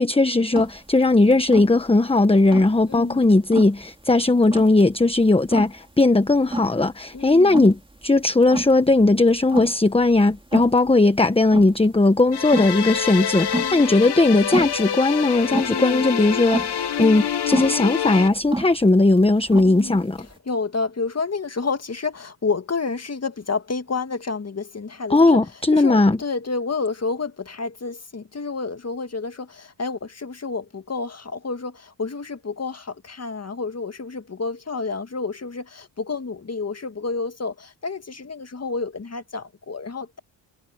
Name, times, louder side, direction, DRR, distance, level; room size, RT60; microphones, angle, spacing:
voice 1, 0.0-20.3 25.1-26.2, left 2 dB, 10° left, 1.2 m, -18 dB
sound 1, 0.5-20.4, right 2 dB, 10° right, 3.3 m, -32 dB
voice 2, 2.9-3.3 7.1-7.6 13.6-13.9 15.7-16.0 19.6-40.2, left 4 dB, 35° left, 2.0 m, -30 dB
sound 2, 12.3-18.3, left 9 dB, 55° left, 1.3 m, -26 dB
cardioid pair, 75°, 46 cm